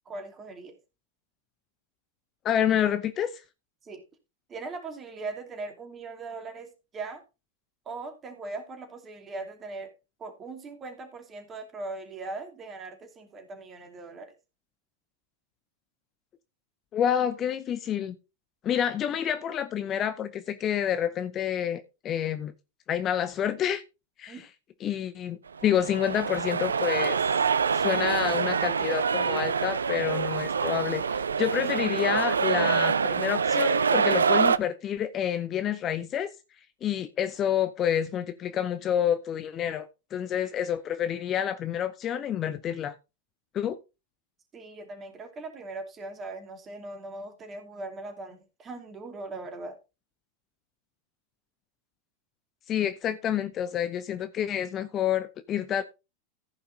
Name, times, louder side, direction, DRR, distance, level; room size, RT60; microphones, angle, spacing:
voice 1, 0.0-0.7 3.8-4.0 4.5-7.2 7.8-9.9 10.2-14.3 24.3-24.5 44.5-49.8, right 3 dB, 25° right, 2.8 m, -40 dB
voice 2, 2.4-3.4 16.9-18.1 18.6-22.5 22.9-23.8 24.2-24.4 24.8-27.2 27.7-36.3 36.8-42.9 43.5-43.8 52.7-55.8, left 9 dB, 30° left, 0.7 m, -28 dB
sound 1, 25.6-34.6, right 6 dB, 70° right, 0.5 m, -26 dB
15.0 x 5.5 x 3.9 m
figure-of-eight pair, 90°, 0 cm